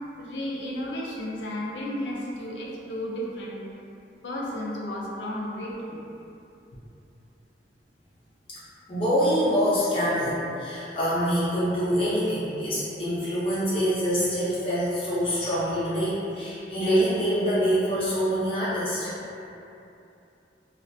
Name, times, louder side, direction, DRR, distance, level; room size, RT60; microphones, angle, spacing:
voice 1, 0.2-3.7 4.2-6.0, left 1 dB, 80° left, -4 dB, 0.5 m, -33 dB
voice 2, 8.9-19.1, equal, 30° left, -11 dB, 0.7 m, -25 dB
2.4 x 2.1 x 2.6 m, 2.8 s
head